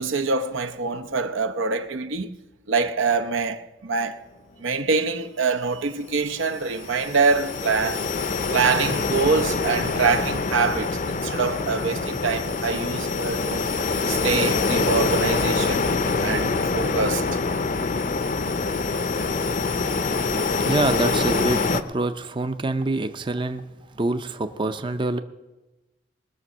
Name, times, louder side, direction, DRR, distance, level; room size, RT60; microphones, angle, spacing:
voice 1, 0.0-2.4 2.7-4.2 4.6-8.0 8.5-13.7 14.1-15.9 16.2-17.2, right 4 dB, 85° right, 0.8 m, -25 dB
sound 1, 6.1-21.8, left 4 dB, 40° left, 0.5 m, -25 dB
voice 2, 20.7-23.6 24.0-25.2, right 2 dB, 25° right, 0.5 m, -25 dB
20.0 x 6.8 x 6.2 m
head